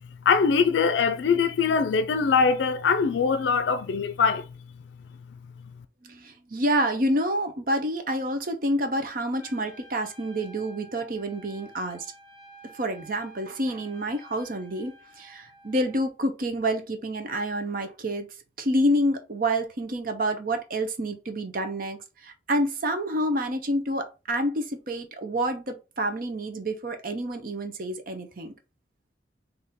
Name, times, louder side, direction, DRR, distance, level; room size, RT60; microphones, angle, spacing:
voice 1, 0.3-4.4, left 5 dB, 85° left, 0.4 m, -22 dB
voice 2, 6.0-12.1 12.7-18.3 18.6-28.5, right 1 dB, 50° right, 0.8 m, -28 dB
Trumpet, 9.4-16.1, right 2 dB, 25° left, 1.9 m, -51 dB
4.2 x 2.7 x 3.6 m
head